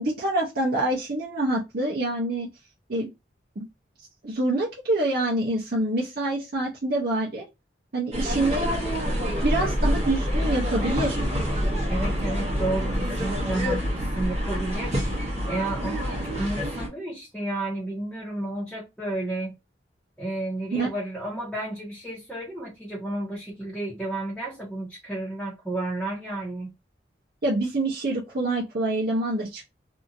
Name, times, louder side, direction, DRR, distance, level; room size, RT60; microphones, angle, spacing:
voice 1, 0.0-2.5 2.9-3.1 3.6-3.7 4.2-7.5 7.9-8.7 9.4-11.2 20.7-20.9 27.4-29.7, right 2 dB, 60° right, 0.7 m, -26 dB
sound 1, 8.1-16.9, equal, 40° right, 1.0 m, -27 dB
voice 2, 11.9-19.5 20.2-26.7, right 2 dB, 5° left, 1.0 m, -32 dB
2.7 x 2.5 x 2.6 m
head